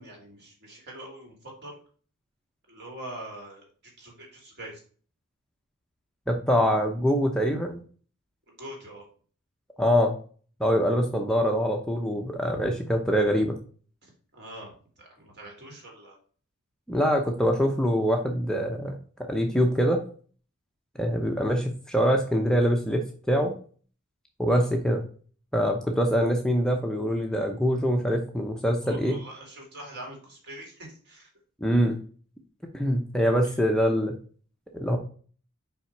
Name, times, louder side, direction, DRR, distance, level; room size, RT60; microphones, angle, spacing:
voice 1, 0.0-1.3 1.6-1.7 2.7-4.8 8.5-9.0 14.3-14.7 15.0-16.1 24.5-24.7 28.8-31.3, right 1 dB, 50° right, 0 dB, 2.8 m, -43 dB
voice 2, 6.3-7.8 9.8-10.2 10.6-13.6 16.9-19.0 19.3-20.0 21.0-23.6 24.4-25.0 25.5-29.2 31.6-32.0 32.7-34.2 34.7-35.0, equal, 5° left, 2 dB, 0.7 m, -24 dB
5.7 x 4.9 x 4.5 m, 0.42 s
head